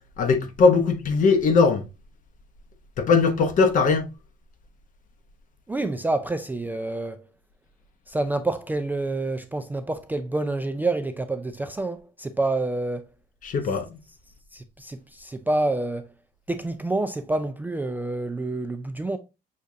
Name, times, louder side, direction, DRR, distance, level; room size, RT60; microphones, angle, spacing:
voice 1, 0.2-1.8 3.0-4.1 13.4-13.9, left 4 dB, 50° left, 0.9 m, -20 dB
voice 2, 5.7-7.3 8.1-13.1 14.5-16.1 16.5-19.2, right 2 dB, 10° right, 0.3 m, -28 dB
6.5 x 2.4 x 2.6 m
cardioid pair, 110°, 17 cm